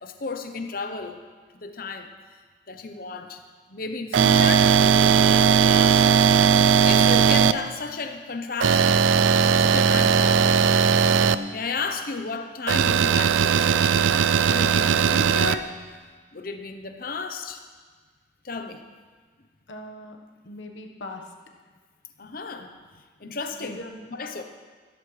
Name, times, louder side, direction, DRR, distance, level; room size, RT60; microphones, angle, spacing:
voice 1, 0.0-1.2 1.6-2.1 2.7-3.4 3.7-6.1 6.5-9.0 9.6-11.3 11.5-13.9 14.5-15.8 16.3-17.6 18.4-18.8 22.2-22.7 23.2-23.8 24.1-24.4, left 4 dB, 50° left, 6 dB, 0.8 m, -33 dB
sound 1, 4.1-7.5 8.6-11.3 12.7-15.5, right 7 dB, 80° right, 0.4 m, -18 dB
voice 2, 19.7-20.2 20.4-21.3 23.6-24.1, left 1 dB, 75° left, 3 dB, 1.3 m, -40 dB
14.5 x 13.5 x 3.3 m, 1.5 s
head